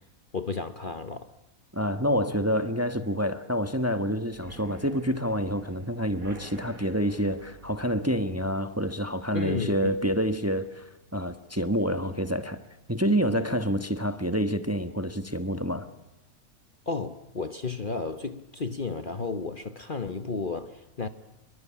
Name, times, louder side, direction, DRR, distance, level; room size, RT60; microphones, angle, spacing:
voice 1, 0.3-1.3 9.3-9.9 16.9-21.1, left 4 dB, 40° left, 1.1 m, -33 dB
voice 2, 1.7-12.6 12.9-15.9, equal, 10° right, 1.2 m, -28 dB
sound 1, 4.3-11.9 12.3-12.7 12.9-13.0 13.4-13.5, right 2 dB, 65° right, 5.0 m, -50 dB
26.5 x 23.0 x 8.6 m
omnidirectional pair, 1.6 m